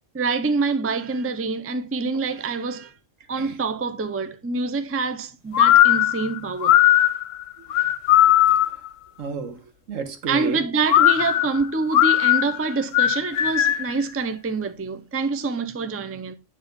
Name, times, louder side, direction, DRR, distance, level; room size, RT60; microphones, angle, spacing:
voice 1, 0.1-2.9 3.3-6.8 10.3-16.4, right 4 dB, 15° right, 0.4 m, -26 dB
sound 1, 5.5-8.9 10.9-14.0, left 13 dB, 80° left, 0.9 m, -18 dB
voice 2, 8.2-8.8 9.2-10.6, right 5 dB, 80° right, 1.6 m, -32 dB
9.5 x 3.7 x 5.1 m
omnidirectional pair, 1.3 m